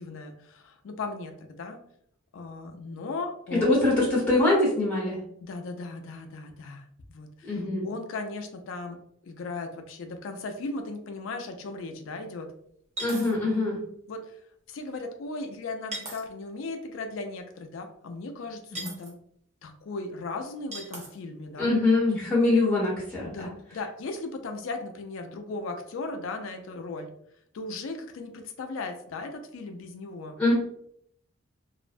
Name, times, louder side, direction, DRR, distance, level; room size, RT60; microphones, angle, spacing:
voice 1, 0.0-1.8 2.3-3.8 5.4-12.5 14.1-14.4 14.7-19.2 19.6-21.8 23.2-27.1 27.5-30.4, left 3 dB, 65° left, 6 dB, 0.4 m, -37 dB
voice 2, 3.5-5.2 7.4-7.9 13.0-13.8 18.8-18.9 21.6-23.3 30.4-30.5, left 2 dB, 5° left, -9 dB, 0.8 m, -23 dB
sound 1, 10.9-11.0 11.4-11.5 13.0-13.4 15.9-16.2 18.7-19.1 20.7-21.1, right 1 dB, 30° right, 0.5 m, -37 dB
2.4 x 2.1 x 2.5 m, 0.68 s
head